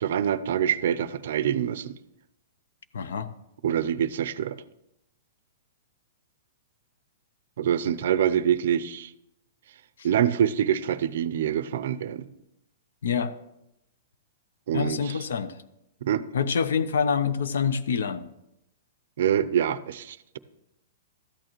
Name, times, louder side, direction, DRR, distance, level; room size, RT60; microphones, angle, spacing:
voice 1, 0.0-2.0 3.6-4.6 7.6-9.1 10.0-12.3 14.7-15.2 16.0-16.3 19.2-20.4, right 9 dB, 60° right, 16 dB, 0.4 m, -25 dB
voice 2, 2.9-3.3 13.0-13.3 14.7-15.6 16.3-18.3, left 6 dB, 85° left, 13 dB, 0.6 m, -26 dB
13.0 x 8.8 x 3.0 m, 0.86 s
hypercardioid pair, 165°, 0 cm